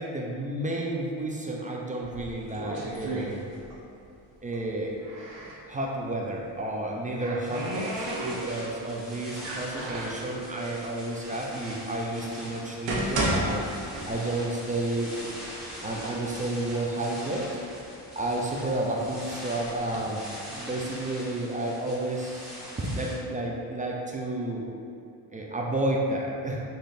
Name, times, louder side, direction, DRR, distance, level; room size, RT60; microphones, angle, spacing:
voice 1, 0.0-3.4 4.4-4.9 5.7-13.6 14.1-15.2 15.8-17.5 18.1-24.6 25.3-26.6, right 1 dB, 20° right, -1 dB, 0.4 m, -31 dB
sound 1, 2.0-3.9 4.2-5.6 6.7-8.8 9.3-10.3 11.0-11.1 11.8-11.9 12.5-14.5 14.8-14.9 15.7-15.8 16.1-16.8 17.3-19.0 19.6-20.0, right 1 dB, 65° right, 0.9 m, -33 dB
sound 2, 7.4-23.1, equal, ahead, 1.2 m, -42 dB
3.8 x 3.2 x 2.5 m, 2.5 s
supercardioid pair, 70°, 47 cm